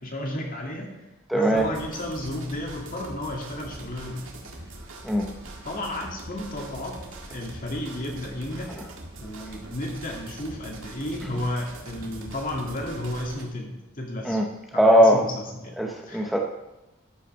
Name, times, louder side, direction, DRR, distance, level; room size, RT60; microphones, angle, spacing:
voice 1, 0.0-0.9 1.3-4.3 5.6-7.0 7.3-8.8 9.2-14.4 14.7-15.7 16.1-16.3, left 1 dB, 45° left, 0 dB, 2.4 m, -33 dB
voice 2, 1.3-1.7 5.0-5.3 14.2-15.3 15.8-16.4, equal, ahead, 0 dB, 0.7 m, -20 dB
sound 1, 1.6-13.4, right 2 dB, 80° right, 1.9 m, -42 dB
13.0 x 5.8 x 5.5 m, 1.0 s
head